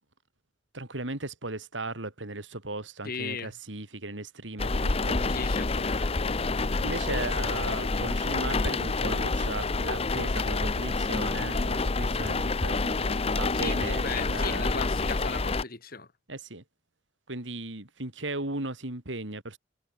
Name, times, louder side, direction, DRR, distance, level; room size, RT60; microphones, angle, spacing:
voice 1, 0.7-5.2 6.8-14.9 16.3-16.6 17.3-19.6, right 2 dB, 85° right, 3.5 m, -37 dB
voice 2, 3.0-3.5 5.3-6.2 13.2-16.1, left 4 dB, 50° left, 2.6 m, -37 dB
sound 1, 4.6-15.6, left 3 dB, 30° left, 0.8 m, -28 dB
head